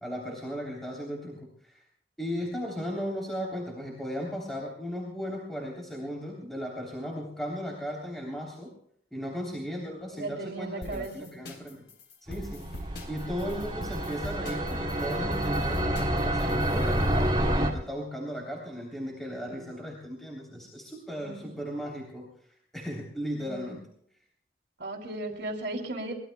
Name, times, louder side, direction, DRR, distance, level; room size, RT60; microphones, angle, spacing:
voice 1, 0.0-1.8 2.2-8.7 9.1-11.9 12.2-23.8, equal, ahead, -3 dB, 3.3 m, -36 dB
voice 2, 10.1-11.3 19.4-19.7 21.2-21.6 23.4-23.8 24.8-26.1, right 2 dB, 80° right, 1 dB, 2.9 m, -36 dB
sound 1, 10.8-17.2, equal, 80° left, 3.8 m, -43 dB
sound 2, 12.3-17.7, right 1 dB, 25° right, 2.3 m, -28 dB
24.0 x 20.5 x 2.3 m, 0.67 s
head